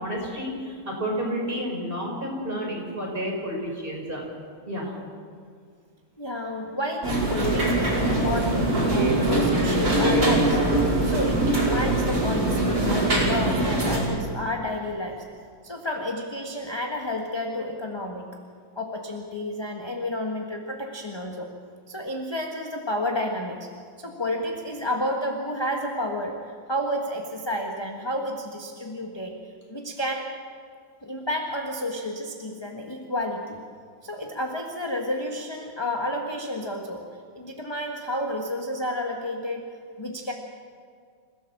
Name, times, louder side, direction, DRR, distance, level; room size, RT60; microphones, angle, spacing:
voice 1, 0.0-4.2 4.7-5.0, equal, 25° right, -2 dB, 5.6 m, -30 dB
voice 2, 6.2-10.6 11.0-15.3 15.6-18.4 18.7-21.5 21.9-23.7 24.0-29.4 29.7-30.4 31.0-33.6 34.0-40.3, left 1 dB, 15° left, 2 dB, 1.4 m, -31 dB
sound 1, 7.0-14.0, right 1 dB, 45° right, 5.6 m, -22 dB
28.0 x 16.5 x 7.4 m, 2.1 s
omnidirectional pair, 2.2 m